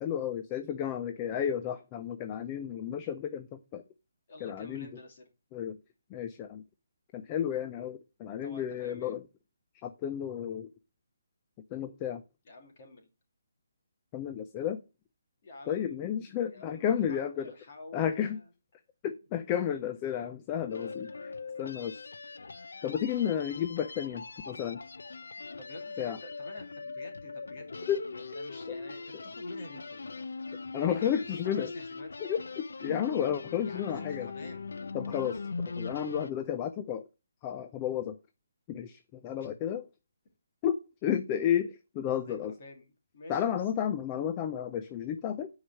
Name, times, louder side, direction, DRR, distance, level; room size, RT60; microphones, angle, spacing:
voice 1, 0.0-3.8 4.4-4.9 5.5-5.8 6.1-6.6 7.1-9.2 9.8-10.7 11.7-12.2 14.1-14.8 15.7-17.5 17.9-18.4 19.0-21.1 21.6-22.0 22.8-24.8 26.0-26.2 27.9-28.0 28.7-28.8 30.7-31.7 32.2-34.3 34.9-35.4 35.8-37.0 37.4-38.2 38.7-39.8 40.6-42.5 43.3-45.5, left 9 dB, 15° left, 0.4 m, -32 dB
voice 2, 4.3-5.3 8.4-9.1 12.4-13.1 15.4-16.0 16.4-18.5 25.6-30.1 30.8-32.2 33.6-34.8 39.4-39.5 42.3-43.6, left 2 dB, 30° left, 2.7 m, -49 dB
sound 1, 20.7-36.3, left 4 dB, 75° left, 0.8 m, -41 dB
9.8 x 4.8 x 6.3 m
hypercardioid pair, 180°, 0 cm